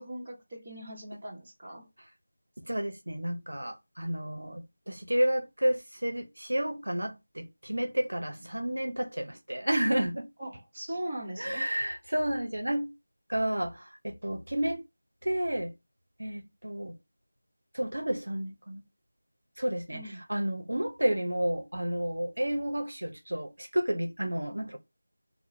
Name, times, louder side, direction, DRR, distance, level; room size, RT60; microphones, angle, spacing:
voice 1, 0.0-1.9 10.4-11.6 19.9-20.2, right 1 dB, 25° right, 1.1 m, -40 dB
voice 2, 2.6-10.3 11.4-12.9 13.3-14.8 15.2-15.7 16.2-16.9 17.7-18.8 19.6-24.8, right 1 dB, 85° right, 0.6 m, -31 dB
3.0 x 2.1 x 3.6 m
figure-of-eight pair, 170°, 0 cm